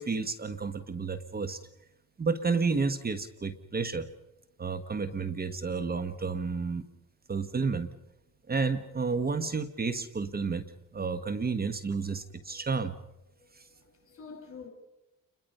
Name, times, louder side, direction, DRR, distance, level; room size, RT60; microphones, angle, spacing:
voice 1, 0.0-1.6 2.2-4.1 4.6-6.8 7.3-7.9 8.5-12.9 13.6-13.7, right 4 dB, 30° right, 1.3 m, -31 dB
voice 2, 12.2-12.7 13.8-14.7, left 5 dB, 50° left, 7.0 m, -48 dB
29.5 x 22.0 x 5.5 m
cardioid pair, 90°, 30 cm